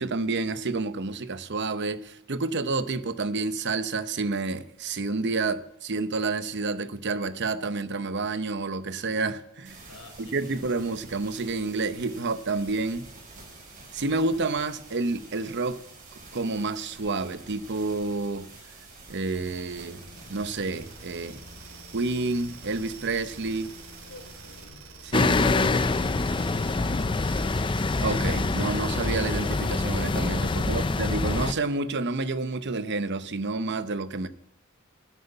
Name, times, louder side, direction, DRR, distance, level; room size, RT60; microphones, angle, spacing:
voice 1, 0.0-9.8 10.2-13.1 13.9-15.8 16.3-18.5 19.1-20.0 20.3-21.4 21.9-23.7 25.0-25.7 28.0-34.3, right 3 dB, 55° right, 0.8 m, -29 dB
sound 1, 9.6-24.6, right 3 dB, 40° right, 5.7 m, -48 dB
voice 2, 9.9-10.6 24.0-27.4, left 1 dB, 70° left, 4.2 m, -49 dB
sound 2, 19.9-30.1, right 2 dB, 85° right, 3.0 m, -46 dB
sound 3, 25.1-31.5, left 3 dB, 25° left, 0.4 m, -25 dB
11.0 x 8.0 x 9.7 m
head